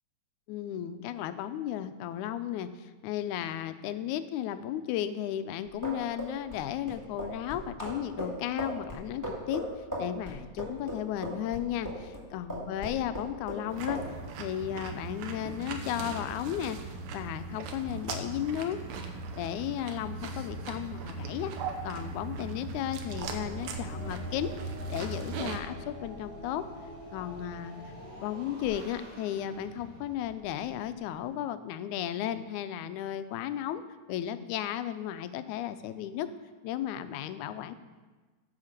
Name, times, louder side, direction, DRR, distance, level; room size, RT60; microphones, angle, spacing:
voice 1, 0.5-9.6 10.0-18.8 19.4-21.5 21.8-24.5 24.9-26.6 27.1-27.7 28.2-33.8 34.1-36.3 36.6-37.7, left 11 dB, 85° left, 11 dB, 2.0 m, -34 dB
sound 1, 5.6-12.2 12.5-13.6 13.9-14.1, equal, 5° right, 1.9 m, -37 dB
sound 2, 13.7-25.6, right 4 dB, 75° right, 2.1 m, -39 dB
sound 3, 23.1-31.2, left 1 dB, 50° right, 4.3 m, -46 dB
9.6 x 5.7 x 6.6 m, 1.3 s
omnidirectional pair, 3.4 m